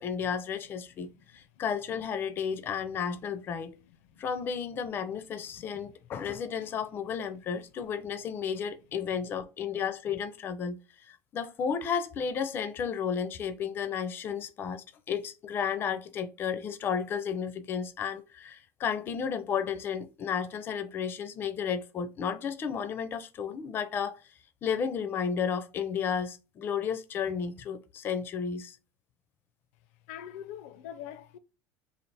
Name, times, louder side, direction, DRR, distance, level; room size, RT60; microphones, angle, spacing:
voice 1, 0.0-3.7 4.2-10.8 11.1-24.1 24.6-28.8, left 7 dB, 30° left, 0.4 m, -33 dB
voice 2, 3.9-4.3 5.4-5.8 30.1-31.4, left 10 dB, 80° left, 0.5 m, -45 dB
3.2 x 2.4 x 4.0 m
cardioid pair, 150°, 8 cm